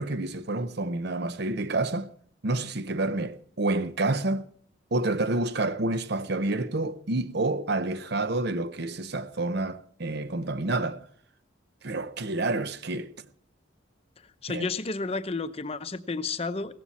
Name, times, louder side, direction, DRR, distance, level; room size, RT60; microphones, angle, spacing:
voice 1, 0.0-2.1 2.4-4.5 4.9-11.1 11.8-13.3 14.5-14.7, right 2 dB, 55° right, 0.7 m, -29 dB
voice 2, 14.4-16.7, left 3 dB, 30° left, 0.7 m, -31 dB
17.0 x 14.5 x 4.2 m
head